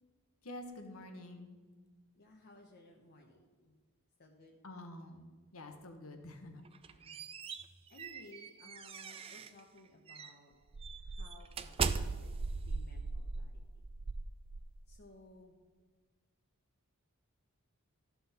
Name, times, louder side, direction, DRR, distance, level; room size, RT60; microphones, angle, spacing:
voice 1, 0.4-1.6 4.6-5.2 5.5-6.7, left 1 dB, 70° left, 5 dB, 1.2 m, -48 dB
voice 2, 2.1-3.7 4.2-4.6 6.9-7.2 7.9-10.5 11.0-12.3 12.6-13.8 14.9-15.6, left 2 dB, 45° left, 0 dB, 0.9 m, -59 dB
sound 1, 6.7-9.6 10.1-10.3 10.7-15.0, right 4 dB, 25° right, 0.3 m, -39 dB
13.5 x 5.8 x 4.2 m, 1.4 s
head